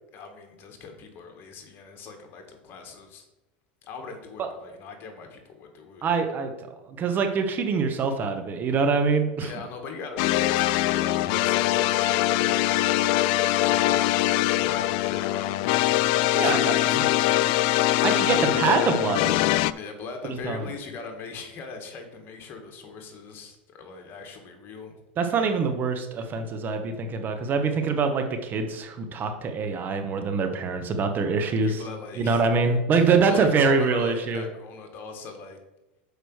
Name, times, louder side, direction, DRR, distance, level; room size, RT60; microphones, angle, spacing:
voice 1, 0.1-3.3 3.8-6.0 9.4-12.5 13.5-16.0 16.4-17.9 18.4-18.5 19.7-24.9 31.4-32.4 32.9-35.6, left 4 dB, 40° left, 3 dB, 1.8 m, -40 dB
voice 2, 6.0-6.5 6.8-9.5 16.3-17.0 18.0-19.3 20.4-20.7 25.2-31.8 32.2-34.4, right 4 dB, 35° right, 6 dB, 1.0 m, -24 dB
sound 1, 10.2-19.7, left 16 dB, 60° left, 0.3 m, -23 dB
6.2 x 5.0 x 6.3 m, 1.0 s
supercardioid pair, 115°, 6 cm